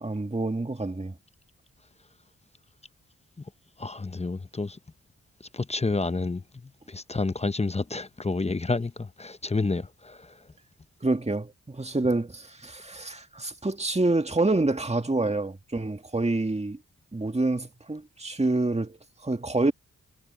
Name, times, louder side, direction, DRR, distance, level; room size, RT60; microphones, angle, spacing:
voice 1, 0.0-1.1 11.0-16.8 17.1-19.7, right 2 dB, 20° right, 1.9 m, -27 dB
voice 2, 3.8-4.8 5.5-6.4 6.9-10.3, left 3 dB, 20° left, 0.8 m, -29 dB
cardioid pair, 60°, 29 cm